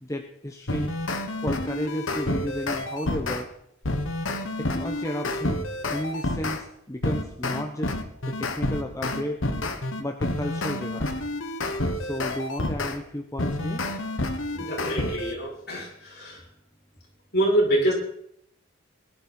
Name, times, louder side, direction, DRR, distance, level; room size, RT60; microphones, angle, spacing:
voice 1, 0.0-0.9 1.4-3.5 4.6-5.6 5.9-7.9 8.2-9.4 10.0-11.1 11.9-13.8, equal, 15° left, 3 dB, 1.0 m, -32 dB
sound 1, 0.7-3.4 3.8-6.6 7.0-13.0 13.4-15.3, left 2 dB, 75° left, 1.6 m, -29 dB
voice 2, 14.5-16.4 17.3-17.9, right 1 dB, 50° left, -4 dB, 6.8 m, -25 dB
21.0 x 12.0 x 4.5 m, 0.71 s
head